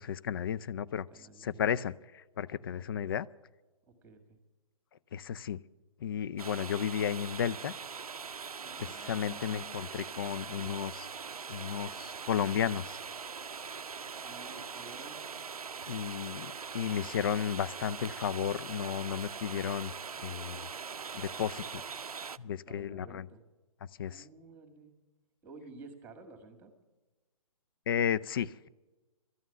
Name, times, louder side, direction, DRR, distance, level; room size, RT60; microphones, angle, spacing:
voice 1, 0.0-1.1 1.4-1.9 2.4-3.3 5.1-5.6 6.0-7.7 9.0-11.1 11.5-13.0 15.9-19.9 20.2-20.7 21.1-21.8 22.4-23.3 24.0-24.2 27.9-28.7, left 8 dB, 40° left, 17 dB, 0.4 m, -33 dB
voice 2, 1.1-1.6 2.7-3.1 3.9-4.4 8.6-9.5 14.2-15.2 22.7-23.4 24.0-24.9 25.4-26.8, right 3 dB, 10° right, 6 dB, 1.8 m, -52 dB
sound 1, 6.4-22.4, right 6 dB, 85° right, 0.5 m, -42 dB
13.0 x 9.1 x 9.8 m, 1.2 s
figure-of-eight pair, 140°, 18 cm